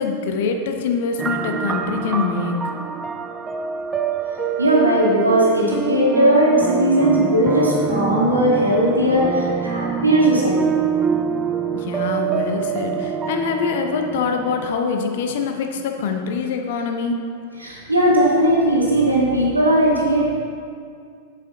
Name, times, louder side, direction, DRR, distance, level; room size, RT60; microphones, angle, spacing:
voice 1, 0.0-2.6 11.7-17.2, left 5 dB, 55° left, 4 dB, 0.9 m, -24 dB
sound 1, 1.2-14.7, right 6 dB, 20° right, 0.5 m, -26 dB
voice 2, 4.6-10.8 17.6-20.3, right 1 dB, 85° right, -4 dB, 1.8 m, -18 dB
7.8 x 7.5 x 3.9 m, 2.3 s
figure-of-eight pair, 90°, 0 cm